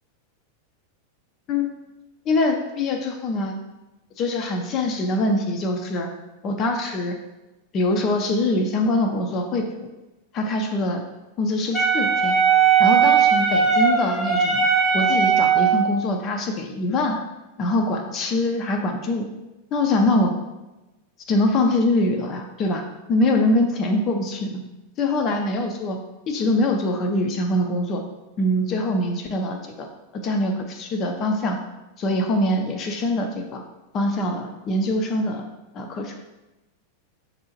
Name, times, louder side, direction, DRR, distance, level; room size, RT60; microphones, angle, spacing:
voice 1, 2.3-3.5 4.2-6.1 6.4-7.2 7.7-9.7 10.3-11.0 11.4-12.4 12.8-14.6 14.9-17.2 17.6-19.3 19.7-20.4 21.3-24.6 25.0-26.0 26.3-28.0 28.4-29.9 30.1-31.6 32.0-33.6 33.9-35.4 35.7-36.1, left 1 dB, 30° left, 4 dB, 0.5 m, -23 dB
Wind instrument woodwind instrument, 11.7-15.9, right 6 dB, 10° left, 0.9 m, -18 dB
6.8 x 2.6 x 2.9 m, 1.0 s
figure-of-eight pair, 90°, 0 cm